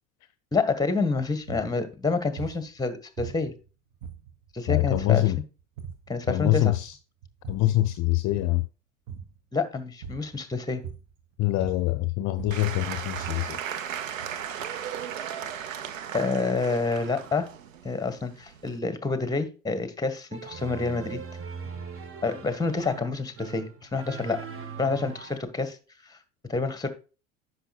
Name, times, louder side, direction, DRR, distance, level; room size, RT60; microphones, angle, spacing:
voice 1, 0.5-3.5 4.5-5.3 6.1-6.7 9.5-10.8 16.1-17.5 17.8-21.2 22.2-24.4 24.8-25.8 26.1-26.2 26.5-26.9, left 4 dB, 10° left, 1.5 m, -28 dB
sound 1, 1.5-1.7 2.4-2.7 3.2-3.7 4.0-4.5 4.9-5.2 5.6-6.1 6.6-6.9 7.2-7.8 8.2-8.6 9.1-9.4 10.0-10.4 10.8-11.2 11.5-13.5, right 8 dB, 55° right, 1.7 m, -40 dB
voice 2, 4.7-5.4 6.3-7.0 7.5-8.6 11.4-13.6, left 16 dB, 45° left, 0.6 m, -24 dB
Applause / Crowd, 12.5-18.8, right 9 dB, 85° right, 0.9 m, -36 dB
sound 2, 20.3-25.4, right 6 dB, 35° right, 1.3 m, -40 dB
10.0 x 6.2 x 2.3 m
hypercardioid pair, 75°, 38 cm